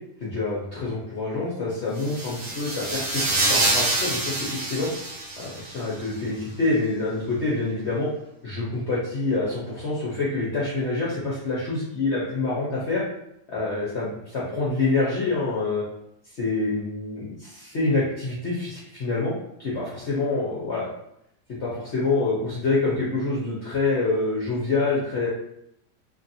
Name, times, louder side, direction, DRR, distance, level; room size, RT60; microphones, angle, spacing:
voice 1, 0.2-4.9 5.4-8.1 8.4-13.0 13.5-15.8 16.4-19.3 19.6-20.9 21.6-25.3, left 3 dB, 55° left, -7 dB, 0.7 m, -26 dB
sound 1, 2.0-5.8, right 2 dB, 55° right, 1.0 m, -26 dB
2.9 x 2.5 x 2.6 m, 0.76 s
omnidirectional pair, 1.8 m